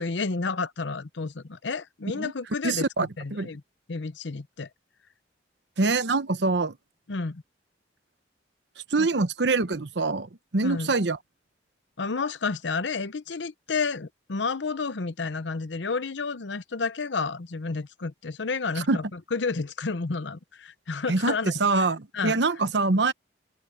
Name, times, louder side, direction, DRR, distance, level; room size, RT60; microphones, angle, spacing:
voice 1, 0.0-3.6 3.9-4.7 7.1-7.4 9.0-9.1 10.6-11.0 12.0-21.9 22.1-22.4, left 4 dB, 75° left, 0.8 m, -31 dB
voice 2, 2.6-3.5 5.8-6.7 8.9-10.3 10.5-11.2 18.9-19.0 21.1-23.1, right 3 dB, 70° right, 1.0 m, -24 dB
open air
head